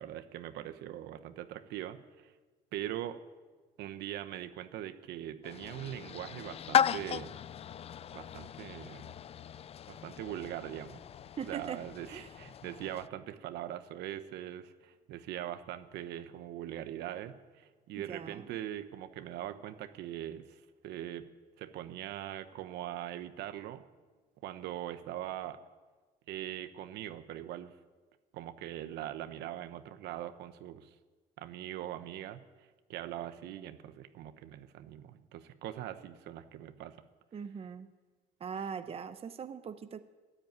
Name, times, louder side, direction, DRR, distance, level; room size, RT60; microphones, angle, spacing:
voice 1, 0.0-2.3 2.7-3.2 3.8-7.3 8.1-9.1 9.9-11.0 11.4-21.3 21.6-23.8 24.4-25.6 26.3-27.7 28.3-30.9 31.4-37.0, right 12 dB, 80° right, 10 dB, 1.1 m, -41 dB
sound 1, 5.4-13.1, left 9 dB, 35° left, 0.4 m, -36 dB
voice 2, 11.4-11.8 12.1-12.3 18.0-18.6 37.3-37.9 38.4-40.0, right 7 dB, 35° right, 10 dB, 0.8 m, -41 dB
14.0 x 10.0 x 9.5 m, 1.3 s
cardioid pair, 110°, 17 cm